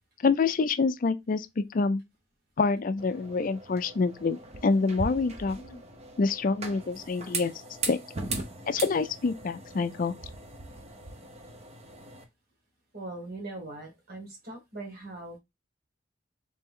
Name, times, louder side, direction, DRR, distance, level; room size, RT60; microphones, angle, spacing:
voice 1, 0.2-2.0 2.6-5.6 6.2-7.5 7.8-8.0 8.7-10.1, left 4 dB, 45° left, 0.4 m, -26 dB
sound 1, 3.0-12.2, right 3 dB, 35° right, 0.7 m, -39 dB
voice 2, 12.9-15.4, right 2 dB, 50° right, 1.8 m, -41 dB
3.3 x 3.2 x 3.6 m
head